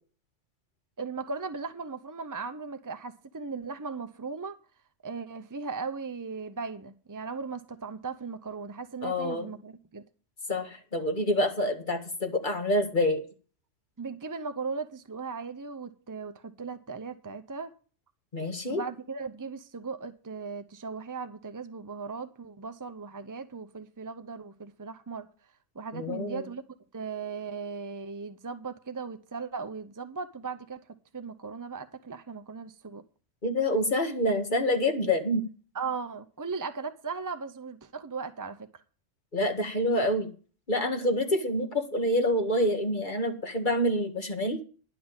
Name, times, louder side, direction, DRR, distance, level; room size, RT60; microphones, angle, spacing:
voice 1, 1.0-4.6 5.0-10.0 14.0-17.7 18.7-25.3 25.8-26.6 26.9-30.8 31.1-33.0 35.7-38.7, right 5 dB, 30° right, 0.4 m, -37 dB
voice 2, 9.0-9.5 10.5-13.2 18.3-18.8 25.9-26.5 33.4-35.4 39.3-40.3 40.7-44.6, left 1 dB, 40° left, 1.8 m, -27 dB
10.5 x 6.0 x 8.7 m
omnidirectional pair, 1.3 m